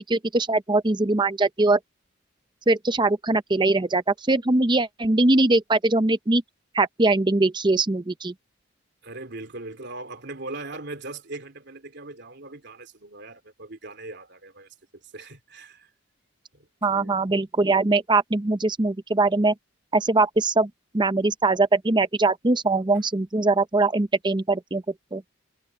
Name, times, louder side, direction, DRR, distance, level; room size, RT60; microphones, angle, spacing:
voice 1, 0.0-1.8 2.7-6.4 6.7-8.3 16.8-19.5 19.9-24.8 25.1-25.2, right 2 dB, 20° right, 0.7 m, -22 dB
voice 2, 9.0-15.9 16.5-17.2, right 2 dB, 55° right, 3.1 m, -40 dB
head